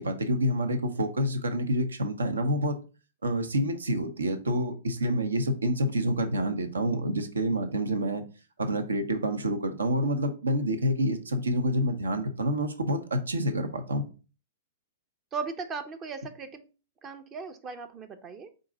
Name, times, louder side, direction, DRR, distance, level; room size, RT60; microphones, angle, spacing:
voice 1, 0.0-2.8 3.2-8.2 8.6-14.0, equal, 80° right, 8 dB, 0.7 m, -28 dB
voice 2, 15.3-16.7 17.0-18.5, right 5 dB, 25° right, 8 dB, 0.5 m, -37 dB
4.6 x 2.5 x 3.8 m, 0.34 s
figure-of-eight pair, 110°, 0 cm